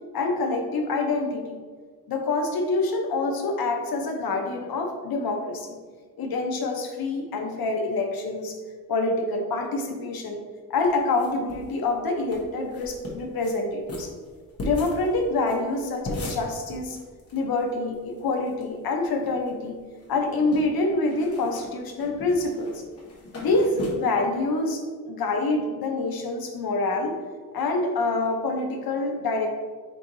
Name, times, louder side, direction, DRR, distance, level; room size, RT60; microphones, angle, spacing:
voice 1, 0.1-1.6 2.1-5.8 6.2-8.5 8.9-10.4 10.7-14.1 14.6-17.0 17.3-19.7 20.1-22.7 23.4-24.8 25.1-27.1 27.5-29.5, left 3 dB, 85° left, 3 dB, 0.7 m, -26 dB
sound 1, 10.8-11.7 12.0-12.1 12.3-12.4 12.7-13.5 13.9-17.4 17.6-17.7 17.9-18.6 19.0-19.7 20.0-23.9, left 1 dB, 40° left, 1.1 m, -38 dB
4.5 x 4.4 x 2.6 m, 1.5 s
wide cardioid pair, 145°, 35 cm